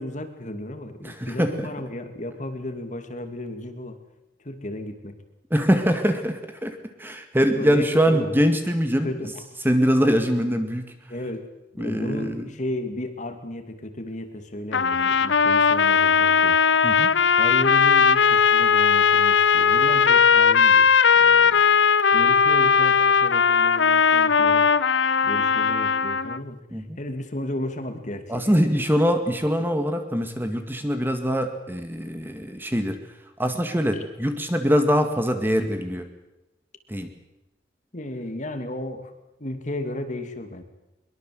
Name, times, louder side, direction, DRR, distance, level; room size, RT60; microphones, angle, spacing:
voice 1, 0.0-4.0 4.4-5.1 7.5-8.3 9.0-9.4 11.1-16.6 17.4-20.9 21.2-21.6 22.1-24.7 25.2-28.8 33.9-34.0 37.9-39.1 39.4-40.6, left 1 dB, 40° left, 7 dB, 2.6 m, -34 dB
voice 2, 1.0-1.7 5.5-9.1 9.6-10.9 11.8-12.5 16.8-17.1 26.7-27.0 28.3-33.0 33.4-36.1 36.9-37.1, equal, 10° right, 6 dB, 2.0 m, -23 dB
sound 1, 14.7-26.4, left 6 dB, 80° left, 0.8 m, -18 dB
23.0 x 22.5 x 7.9 m, 0.95 s
head